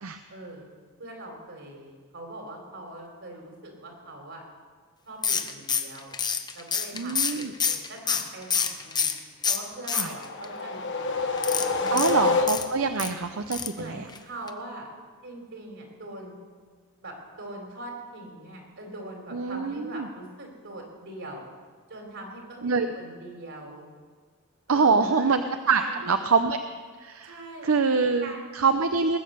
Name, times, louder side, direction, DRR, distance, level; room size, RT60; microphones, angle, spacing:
voice 1, 0.3-0.7 1.0-4.4 5.0-6.2 6.5-9.1 9.4-11.1 11.8-12.2 13.7-14.9 15.2-16.4 17.0-21.5 21.9-23.9 24.7-25.3 25.8-26.1 27.2-27.7 28.2-28.7, right 1 dB, 60° right, 1 dB, 3.5 m, -42 dB
sound 1, 5.2-9.2 9.4-10.4 11.4-13.1 13.5-13.8 14.1-14.2 14.5-14.6, left 6 dB, 20° left, 0.7 m, -27 dB
voice 2, 6.9-7.5 9.9-10.1 11.9-14.0 19.3-20.1 22.6-22.9 24.7-26.6 27.0-27.4 27.6-29.2, right 4 dB, 85° right, 8 dB, 0.6 m, -25 dB
sound 2, 9.9-13.0, left 3 dB, 60° left, 1.3 m, -27 dB
19.5 x 8.7 x 6.8 m, 1.5 s
head